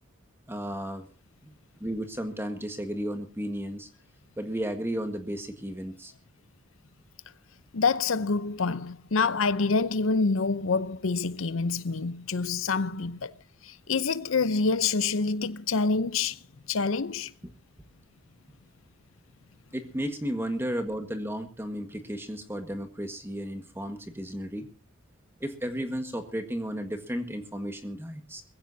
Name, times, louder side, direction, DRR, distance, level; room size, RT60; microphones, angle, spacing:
voice 1, 0.5-1.1 1.4-1.5 1.8-3.9 4.4-6.1 17.4-17.5 19.7-24.7 25.4-28.4, equal, 10° right, 1.6 m, -33 dB
voice 2, 7.7-13.3 13.6-16.4 16.7-17.3, left 4 dB, 75° left, 0.8 m, -27 dB
22.0 x 16.0 x 2.8 m
head